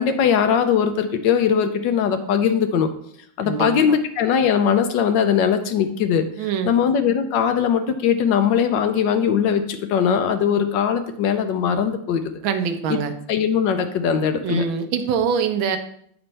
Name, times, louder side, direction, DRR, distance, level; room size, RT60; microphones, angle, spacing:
voice 1, 0.0-2.9 3.4-6.3 6.6-12.3 12.9-13.0 13.3-14.6, left 7 dB, 75° left, 8 dB, 1.3 m, -20 dB
voice 2, 3.4-4.0 6.4-6.7 12.4-13.1 14.4-15.8, right 7 dB, 85° right, 7 dB, 1.5 m, -24 dB
8.8 x 4.4 x 4.1 m, 0.68 s
omnidirectional pair, 2.1 m